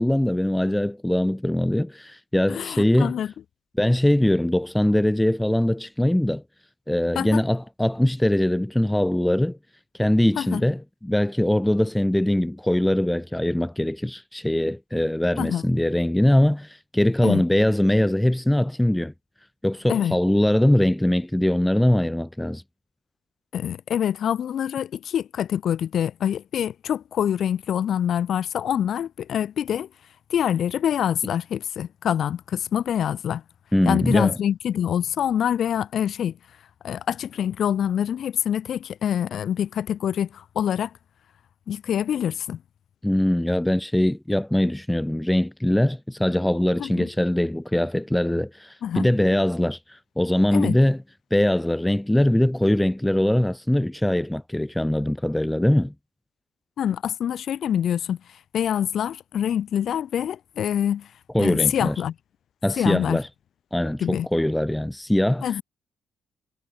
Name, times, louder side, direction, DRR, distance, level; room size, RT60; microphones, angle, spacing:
voice 1, 0.0-3.2 3.8-6.4 6.9-9.6 10.0-19.1 19.6-22.6 33.7-34.4 43.0-51.0 51.3-55.9 61.3-61.9 62.6-63.3 63.7-65.5, left 1 dB, 5° left, 0.7 m, -22 dB
voice 2, 2.5-3.3 7.1-7.4 10.4-10.6 15.4-15.6 17.2-17.4 19.9-20.2 23.5-29.9 30.3-33.4 33.9-36.4 36.8-40.9 41.7-42.6 46.8-47.1 48.8-49.1 50.5-50.8 56.8-58.2 58.5-61.1 61.4-62.1 62.8-63.2 64.0-64.3 65.4-65.6, left 9 dB, 65° left, 2.6 m, -25 dB
cardioid pair, 90°, 0 cm